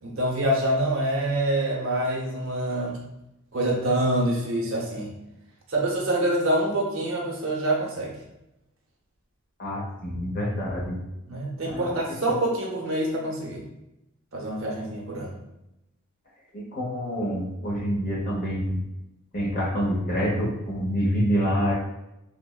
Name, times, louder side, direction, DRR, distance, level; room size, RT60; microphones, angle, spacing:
voice 1, 0.0-3.0 3.5-5.1 5.7-8.1 11.3-13.6 14.3-15.4, right 1 dB, 70° right, -2 dB, 0.7 m, -26 dB
voice 2, 9.6-11.0 11.6-11.9 12.2-12.3 16.5-18.8 19.3-21.7, equal, 40° left, -4 dB, 0.8 m, -27 dB
3.4 x 2.0 x 2.2 m, 0.90 s
head